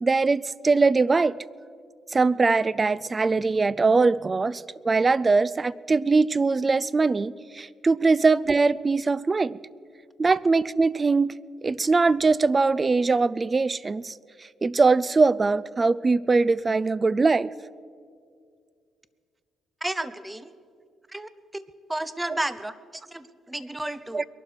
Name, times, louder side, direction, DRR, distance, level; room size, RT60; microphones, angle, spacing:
voice 1, 0.0-1.4 2.1-9.6 10.2-14.1 14.6-17.5 22.3-22.4 24.1-24.2, right 4 dB, 30° right, 21 dB, 0.3 m, -22 dB
voice 2, 19.8-20.5 21.1-24.2, right 1 dB, 10° right, 14 dB, 0.7 m, -33 dB
22.0 x 12.0 x 4.7 m, 2.2 s
cardioid pair, 90°, 0 cm